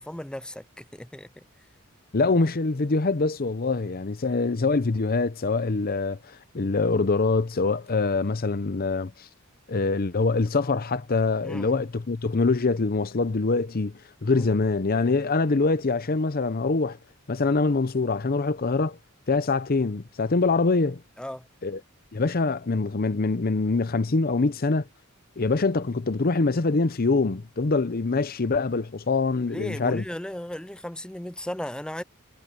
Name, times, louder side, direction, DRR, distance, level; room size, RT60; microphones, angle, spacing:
voice 1, 0.0-1.4 11.4-11.8 14.3-14.4 21.2-21.5 29.5-32.0, left 1 dB, 5° left, 0.4 m, -36 dB
voice 2, 2.1-9.3 9.7-17.0 17.3-19.0 19.3-21.0 21.6-21.8 22.1-24.9 25.4-30.0, left 3 dB, 45° left, 0.7 m, -24 dB
head